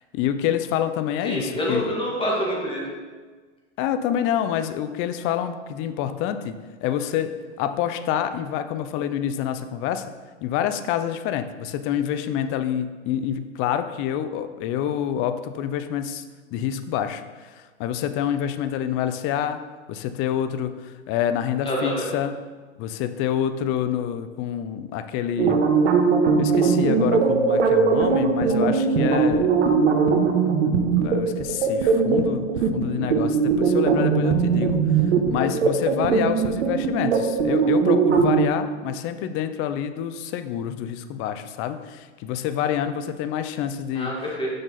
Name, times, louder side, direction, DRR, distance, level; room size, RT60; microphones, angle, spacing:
voice 1, 0.1-1.9 3.8-7.3 7.6-10.0 10.4-16.2 16.5-17.5 17.8-19.6 19.9-22.4 22.8-25.6 26.4-29.5 31.0-34.8 35.3-44.1, left 10 dB, 35° left, 10 dB, 0.5 m, -27 dB
voice 2, 1.2-2.8 21.6-22.1 43.9-44.5, equal, 15° left, -3 dB, 2.1 m, -26 dB
sound 1, 25.4-38.5, right 5 dB, 75° right, 1.0 m, -20 dB
6.4 x 6.0 x 4.0 m, 1.4 s
hypercardioid pair, 105°, 35 cm